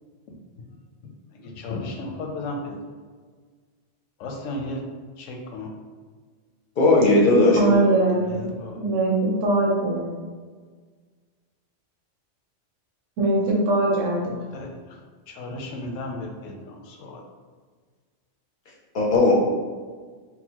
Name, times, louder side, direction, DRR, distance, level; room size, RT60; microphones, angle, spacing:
voice 1, 1.4-2.8 4.2-4.8 5.2-5.7 8.1-8.8 14.5-14.7 15.3-17.2, left 2 dB, 90° left, 2 dB, 0.9 m, -34 dB
voice 2, 6.8-7.6 18.9-19.3, left 2 dB, 55° left, -3 dB, 0.6 m, -16 dB
voice 3, 7.5-8.3 8.8-10.1 13.2-14.4, right 2 dB, 90° right, -3 dB, 1.2 m, -21 dB
3.8 x 2.0 x 2.9 m, 1.5 s
omnidirectional pair, 1.3 m